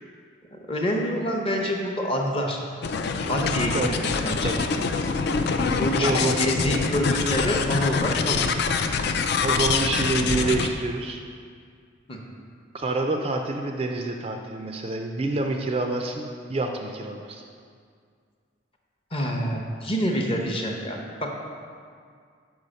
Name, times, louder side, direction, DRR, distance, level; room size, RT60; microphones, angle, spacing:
voice 1, 0.5-2.6 3.3-4.5 5.7-8.5 12.1-12.2 19.1-21.4, equal, 25° left, 1 dB, 0.7 m, -27 dB
sound 1, 2.8-10.7, left 5 dB, 55° left, 0.3 m, -25 dB
voice 2, 4.4-4.7 6.0-6.4 9.4-11.2 12.7-17.4, right 2 dB, 30° right, 3 dB, 0.3 m, -27 dB
5.5 x 4.8 x 6.3 m, 2.2 s
head